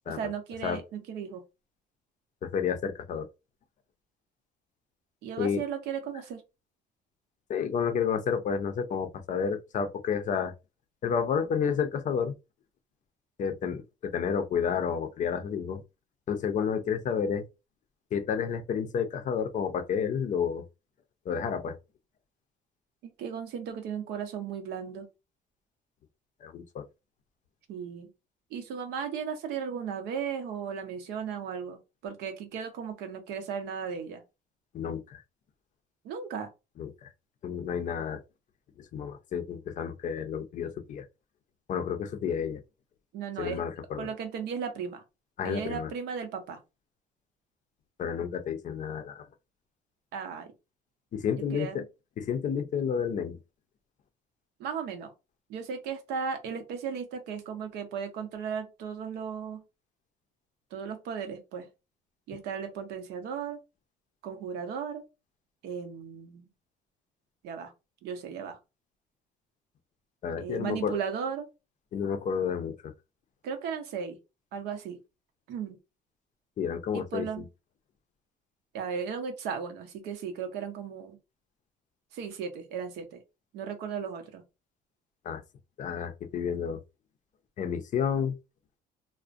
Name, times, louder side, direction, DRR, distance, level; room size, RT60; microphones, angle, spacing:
voice 1, 0.1-1.4 5.2-6.4 23.0-25.1 27.7-28.1 28.5-34.2 36.0-36.5 43.1-43.6 44.0-45.0 45.4-46.6 50.1-50.5 51.5-51.8 54.6-55.1 55.5-59.6 60.7-61.7 62.3-63.6 64.2-65.0 65.6-66.5 67.4-67.7 68.0-68.6 70.4-71.5 73.4-74.2 74.5-75.0 75.5-75.8 76.9-77.5 78.7-81.2 82.1-83.2 83.5-84.4, right 7 dB, 85° right, 0.7 m, -36 dB
voice 2, 2.4-3.3 5.4-5.6 7.5-10.5 11.0-12.3 13.4-15.8 16.3-17.4 18.1-20.6 21.3-21.8 26.4-26.9 34.7-35.2 36.8-37.1 37.4-38.2 38.8-41.0 41.7-42.6 43.4-44.1 45.4-45.9 48.0-49.3 51.1-51.8 52.2-53.4 70.2-71.0 71.9-72.9 76.6-77.4 85.2-85.4 85.8-86.8 87.6-88.4, left 7 dB, 45° left, 0.5 m, -30 dB
2.4 x 2.1 x 2.4 m
cardioid pair, 110°, 17 cm